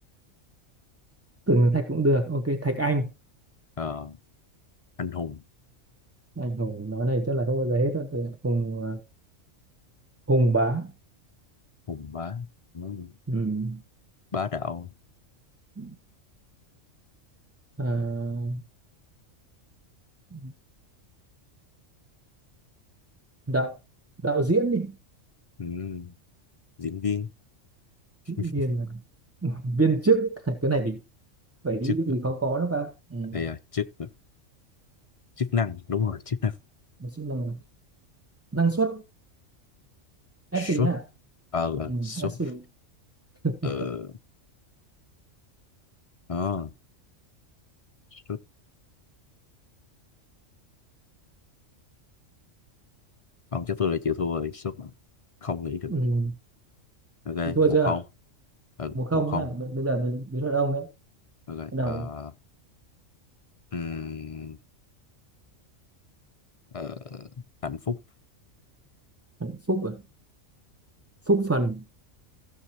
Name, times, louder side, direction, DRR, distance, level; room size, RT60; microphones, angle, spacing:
voice 1, 1.5-3.1 6.4-9.0 10.3-10.9 13.3-13.8 15.8-15.9 17.8-18.6 20.3-20.5 23.5-23.8 24.2-25.0 28.3-29.0 29.4-31.0 31.6-33.4 37.0-37.6 38.5-39.0 40.5-41.0 41.9-42.6 43.4-43.7 55.9-56.3 57.6-57.9 58.9-60.9 61.7-62.1 69.4-70.0 71.3-71.9, right 2 dB, 15° right, 0.7 m, -26 dB
voice 2, 3.8-4.2 5.0-5.4 11.9-12.5 12.7-13.1 14.3-14.9 25.6-26.1 26.8-27.3 28.4-28.5 31.8-32.0 33.3-34.1 35.4-36.6 40.5-40.9 41.5-42.4 43.6-44.2 46.3-46.7 48.1-48.4 53.5-54.9 55.4-55.9 57.2-58.0 58.8-59.5 61.5-62.3 63.7-64.6 66.7-67.3 67.6-68.0, left 6 dB, 55° left, 0.3 m, -30 dB
16.0 x 6.5 x 2.9 m
omnidirectional pair, 1.3 m